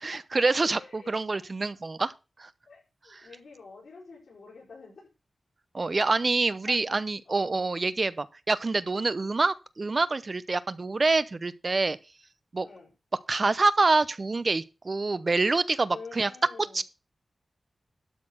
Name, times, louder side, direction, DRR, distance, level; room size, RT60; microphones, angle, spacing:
voice 1, 0.0-2.1 2.4-2.5 3.1-3.2 5.7-12.0 12.5-12.7 13.3-16.3 16.6-16.8, right 3 dB, 45° right, 0.8 m, -26 dB
voice 2, 0.7-1.1 2.7-5.1 6.7-7.0 7.3-7.6 12.6-12.9 15.9-16.8, left 4 dB, 80° left, 5.7 m, -47 dB
12.0 x 4.3 x 7.3 m
wide cardioid pair, 65°, 0 cm